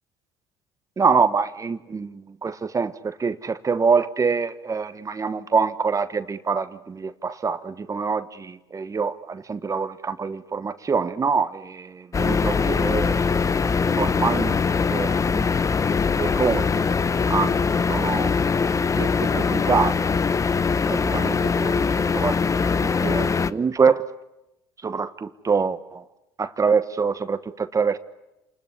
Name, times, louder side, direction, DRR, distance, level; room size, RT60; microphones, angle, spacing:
voice 1, 1.0-13.3 14.0-14.6 14.9-15.5 16.2-16.7 17.3-20.1 20.9-24.0 24.8-26.0 26.4-28.0, right 5 dB, 30° right, 12 dB, 1.3 m, -25 dB
sound 1, 12.1-23.5, left 5 dB, 25° left, 1.0 m, -22 dB
28.0 x 21.0 x 9.8 m, 0.94 s
hypercardioid pair, 70°, 12 cm